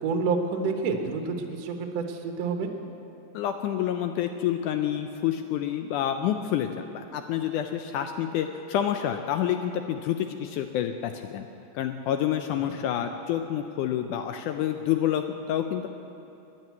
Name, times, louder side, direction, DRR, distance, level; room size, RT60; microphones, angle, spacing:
voice 1, 0.0-2.7 12.6-12.7, right 4 dB, 60° right, 4 dB, 1.9 m, -28 dB
voice 2, 3.3-11.5 11.8-15.9, left 10 dB, 80° left, 7 dB, 1.9 m, -28 dB
10.5 x 10.5 x 9.3 m, 2.8 s
omnidirectional pair, 4.0 m